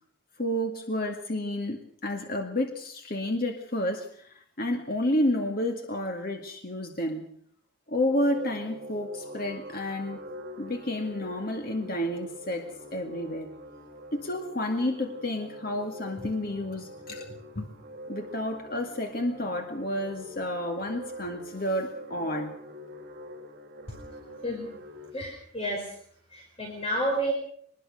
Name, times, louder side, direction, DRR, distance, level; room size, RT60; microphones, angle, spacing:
voice 1, 0.4-7.3 7.9-10.3 10.6-13.5 14.1-17.7 18.1-22.6, left 1 dB, 45° left, 3 dB, 2.1 m, -30 dB
sound 1, 7.9-25.1, equal, 45° right, 6.2 m, -44 dB
voice 2, 25.1-26.0 26.3-27.3, right 1 dB, 30° left, 0 dB, 4.9 m, -30 dB
24.0 x 20.5 x 6.5 m, 0.63 s
head